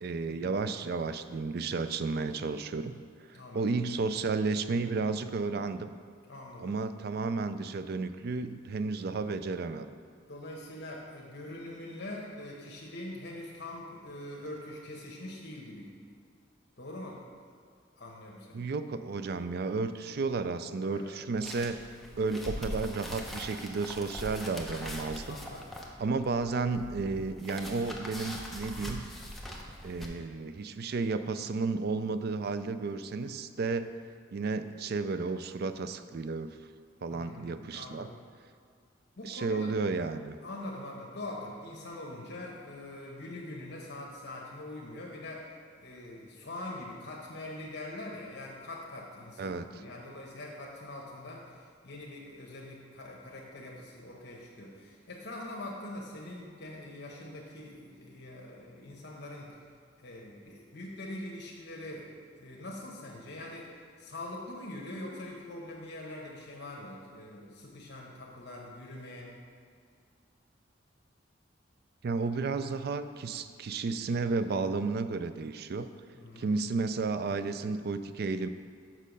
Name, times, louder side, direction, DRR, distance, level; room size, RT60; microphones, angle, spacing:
voice 1, 0.0-3.0 3.3-5.9 6.6-9.9 18.5-21.8 22.2-25.4 26.0-29.0 29.8-33.9 34.3-36.6 37.0-38.1 39.2-40.4 49.4-49.7 72.0-75.9 76.4-78.5, right 4 dB, 55° right, 11 dB, 0.4 m, -32 dB
voice 2, 3.3-3.6 6.3-6.7 10.3-15.9 16.8-17.2 18.0-18.6 20.9-21.2 25.3-25.7 37.1-38.2 39.2-39.7 40.4-45.5 45.8-59.5 60.0-63.7 64.0-69.4 76.1-76.5, left 1 dB, 60° left, -2 dB, 1.0 m, -43 dB
sound 1, 21.4-30.1, left 1 dB, ahead, 0.7 m, -42 dB
6.5 x 6.2 x 5.3 m, 2.1 s
head